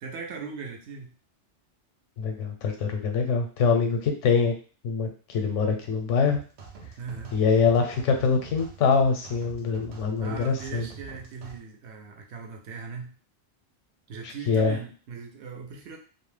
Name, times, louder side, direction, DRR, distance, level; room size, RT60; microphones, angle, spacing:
voice 1, 0.0-1.1 7.0-7.3 10.2-13.1 14.1-16.0, right 5 dB, 75° right, 3 dB, 0.9 m, -39 dB
voice 2, 2.2-4.6 4.8-6.4 7.3-10.9 14.2-14.8, left 5 dB, 90° left, 4 dB, 0.9 m, -24 dB
sound 1, 6.3-11.6, right 5 dB, 55° right, 0.5 m, -46 dB
2.4 x 2.1 x 3.1 m, 0.39 s
omnidirectional pair, 1.2 m